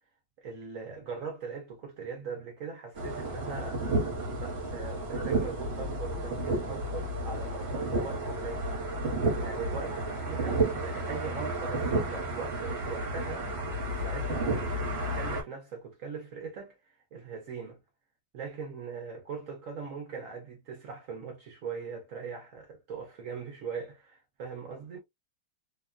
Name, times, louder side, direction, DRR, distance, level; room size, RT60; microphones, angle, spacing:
voice 1, 0.4-3.9 4.3-8.7 9.4-13.5 14.0-14.7 15.1-17.8 18.3-25.0, right 5 dB, 65° right, 0.9 m, -40 dB
sound 1, 3.0-15.4, right 2 dB, 45° right, 1.1 m, -31 dB
2.9 x 2.2 x 2.3 m
omnidirectional pair, 1.9 m